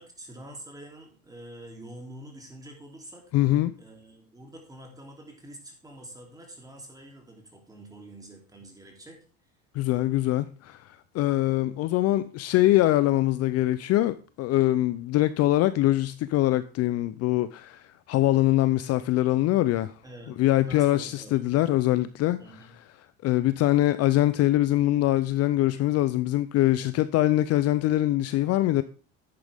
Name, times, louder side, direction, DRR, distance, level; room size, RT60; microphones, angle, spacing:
voice 1, 0.0-3.3 3.8-9.2 20.0-20.4 20.6-21.6 22.4-22.7, right 1 dB, 10° right, 3.1 m, -46 dB
voice 2, 3.3-3.7 9.7-19.9 20.4-22.4 23.2-28.8, left 15 dB, 50° left, 0.5 m, -23 dB
10.5 x 8.7 x 3.5 m
supercardioid pair, 125°, 33 cm